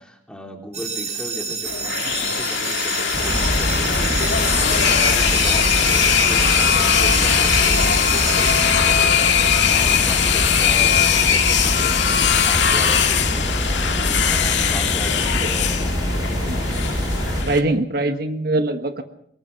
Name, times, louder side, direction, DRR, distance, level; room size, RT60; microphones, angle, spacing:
voice 1, 0.0-4.1 4.4-13.8 14.2-16.1, equal, 5° left, 2 dB, 3.3 m, -36 dB
sound 1, 0.7-9.4, right 5 dB, 40° right, 4.0 m, -29 dB
sound 2, 1.7-17.6, left 8 dB, 85° left, 2.0 m, -20 dB
sound 3, 3.1-17.4, equal, 20° right, 5.3 m, -25 dB
voice 2, 16.5-16.8 17.4-19.0, right 2 dB, 55° right, 7 dB, 1.4 m, -22 dB
22.0 x 20.0 x 5.8 m, 0.69 s
head